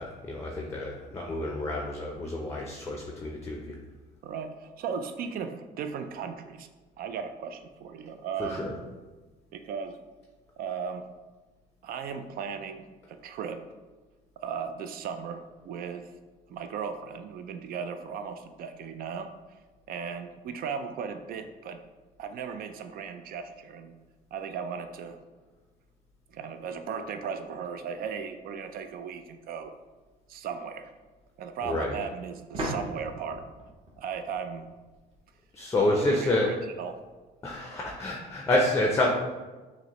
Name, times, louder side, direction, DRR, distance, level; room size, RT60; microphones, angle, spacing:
voice 1, 0.0-3.7 8.4-8.7 31.6-31.9 35.5-36.5 37.4-39.1, left 2 dB, 15° left, 0 dB, 0.5 m, -28 dB
voice 2, 4.2-6.7 7.0-8.7 9.5-10.0 10.6-11.1 11.8-13.6 14.4-16.1 16.5-19.3 19.9-21.8 22.2-24.0 24.3-25.2 26.3-29.7 30.3-30.9 31.4-33.4 34.0-34.7 35.8-37.0, right 6 dB, 60° right, 8 dB, 0.4 m, -36 dB
sound 1, 29.5-29.6 32.5-35.2, right 1 dB, 35° right, 1.0 m, -38 dB
6.0 x 2.1 x 3.0 m, 1.3 s
cardioid pair, 110°, 17 cm